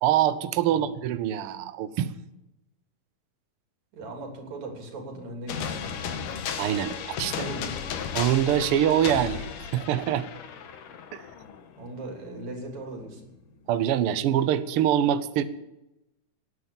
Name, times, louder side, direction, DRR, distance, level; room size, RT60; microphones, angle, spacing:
voice 1, 0.0-2.1 6.6-7.3 8.1-9.4 9.7-10.3 11.1-11.2 13.7-15.4, right 10 dB, 85° right, 12 dB, 1.2 m, -24 dB
voice 2, 3.9-6.0 7.3-7.7 11.8-13.3, right 2 dB, 60° right, 2 dB, 4.4 m, -39 dB
sound 1, 5.5-12.0, left 7 dB, 75° left, 2.8 m, -34 dB
18.5 x 9.7 x 7.2 m, 0.93 s
omnidirectional pair, 3.7 m